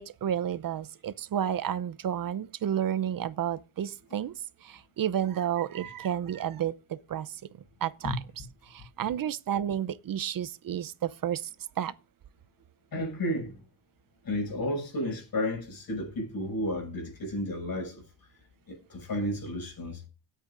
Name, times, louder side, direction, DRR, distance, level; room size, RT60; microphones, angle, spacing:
voice 1, 0.0-4.3 4.6-7.4 7.8-8.2 8.7-11.5 11.8-11.9, right 10 dB, 45° right, 0.7 m, -31 dB
voice 2, 12.9-13.6 14.2-18.0 18.7-20.0, left 1 dB, 45° left, 6.5 m, -32 dB
18.0 x 8.3 x 2.6 m
cardioid pair, 85°, 48 cm